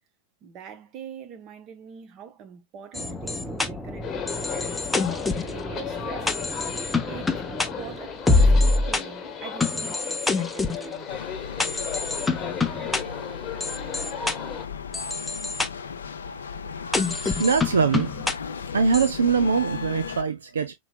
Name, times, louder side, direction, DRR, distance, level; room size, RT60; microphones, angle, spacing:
voice 1, 0.4-6.4 7.1-11.1, right 8 dB, 35° right, 1.0 m, -43 dB
sound 1, 2.9-9.0 9.6-10.9 11.6-13.0 13.6-14.3 14.9-15.7 16.9-18.3 18.9-19.1, left 3 dB, 10° left, 0.6 m, -26 dB
sound 2, 4.0-14.7, left 7 dB, 25° left, 1.0 m, -35 dB
sound 3, 11.1-20.2, left 6 dB, 70° left, 0.5 m, -36 dB
voice 2, 17.0-18.1 18.7-20.7, right 5 dB, 70° right, 0.5 m, -23 dB
5.4 x 3.0 x 2.2 m
figure-of-eight pair, 90°, 0 cm